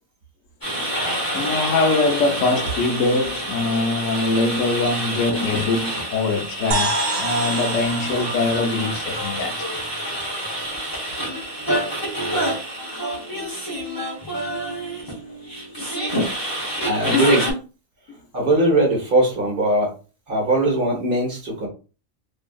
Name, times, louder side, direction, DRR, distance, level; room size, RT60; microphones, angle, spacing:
sound 1, 0.6-17.5, equal, 20° left, 0.8 m, -27 dB
voice 1, 1.3-9.8 12.9-13.5 14.2-14.6 18.1-18.2, left 3 dB, 90° left, 1.0 m, -23 dB
sound 2, 6.7-10.5, right 2 dB, 80° right, 0.9 m, -29 dB
voice 2, 16.8-17.4 18.3-19.9 20.3-21.7, right 1 dB, 50° right, 1.1 m, -20 dB
2.7 x 2.6 x 2.3 m
omnidirectional pair, 1.3 m